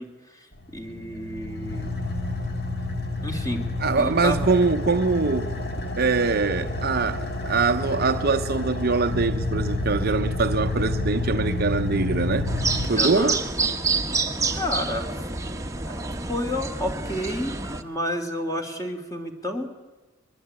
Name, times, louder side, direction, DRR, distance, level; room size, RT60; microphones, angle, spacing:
voice 1, 0.0-1.9 3.2-3.6 4.0-4.5 12.9-13.4 14.5-15.2 15.8-16.0 16.3-19.7, left 1 dB, 15° left, 2.9 m, -30 dB
Car / Idling, 0.6-13.5, left 2 dB, 50° left, 2.4 m, -29 dB
voice 2, 3.8-5.5 6.0-12.5 12.9-13.4, right 4 dB, 45° right, 0.8 m, -23 dB
sound 1, 12.5-17.8, right 4 dB, 15° right, 1.2 m, -28 dB
23.5 x 21.5 x 8.9 m
head